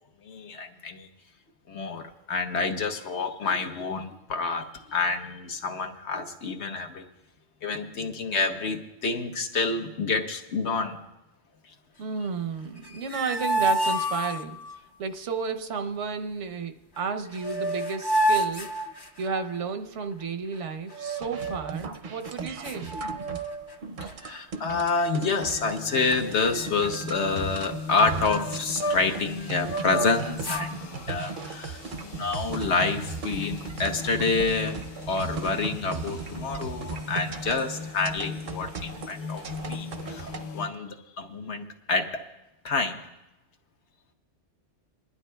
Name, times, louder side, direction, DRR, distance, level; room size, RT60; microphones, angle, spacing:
voice 1, 0.2-1.1 1.7-7.0 7.6-11.0 24.2-34.7 35.1-42.2 42.6-43.0, left 4 dB, 70° left, 5 dB, 1.2 m, -28 dB
voice 2, 12.0-14.6 15.0-18.8 19.2-22.9, right 5 dB, 85° right, 8 dB, 1.1 m, -32 dB
sound 1, 12.8-14.8 17.0-17.1 17.3-19.6 20.9-21.7 22.3-22.4 22.6-23.8 24.1-24.4 25.0-25.6 25.9-26.1 26.3-29.2 29.6-30.7, right 1 dB, 25° left, 0.6 m, -30 dB
sound 2, 21.2-40.4, right 4 dB, 55° right, 0.6 m, -37 dB
sound 3, 25.4-40.7, left 4 dB, 50° left, 0.8 m, -40 dB
28.5 x 11.0 x 2.2 m, 0.93 s
omnidirectional pair, 1.2 m